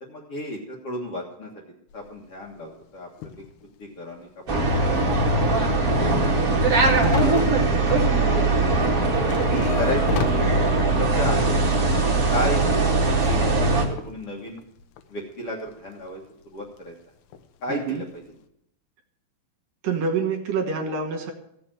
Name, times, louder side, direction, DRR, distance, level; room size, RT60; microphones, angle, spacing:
voice 1, 0.0-1.5 1.9-3.3 3.8-5.1 5.3-6.1 6.8-7.4 7.7-8.5 9.4-10.7 11.0-12.0 12.3-14.6 15.1-16.2 16.5-16.9 17.6-18.2, left 1 dB, 55° left, -2 dB, 1.8 m, -34 dB
sound 1, 1.9-2.2 2.8-2.9 3.2-3.8 4.1-4.2 4.5-4.6 5.0-5.3 5.6-8.4 8.6-11.0 11.6-13.6 13.9-15.0 15.5-16.3 16.6-17.0 17.3-17.6 17.9-18.3, left 7 dB, 80° left, 3.0 m, -35 dB
sound 2, 4.5-13.8, right 2 dB, 40° right, 1.2 m, -21 dB
voice 2, 7.0-7.3 9.3-9.7 17.7-18.0 19.8-21.3, right 5 dB, 65° right, 4 dB, 2.7 m, -27 dB
15.5 x 7.0 x 7.7 m, 0.78 s
omnidirectional pair, 4.8 m